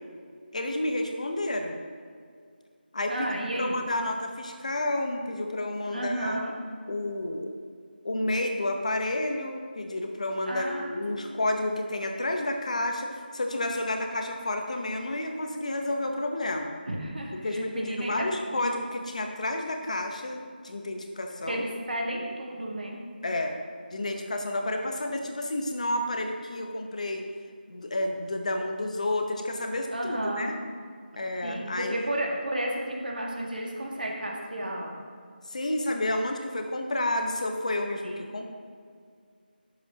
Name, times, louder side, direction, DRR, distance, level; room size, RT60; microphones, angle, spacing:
voice 1, 0.5-1.8 2.9-3.3 3.6-6.3 6.9-7.5 8.0-16.7 17.4-21.6 23.2-23.6 23.9-27.2 27.7-30.6 31.2-32.1 35.5-38.4, left 1 dB, 45° left, 4 dB, 0.8 m, -30 dB
voice 2, 3.1-3.8 5.9-6.5 10.5-11.0 16.9-18.2 18.6-18.7 21.5-23.0 29.9-30.5 31.4-35.0 38.0-38.4, right 1 dB, 60° right, -1 dB, 1.7 m, -32 dB
10.5 x 7.0 x 2.9 m, 2.1 s
figure-of-eight pair, 175°, 6 cm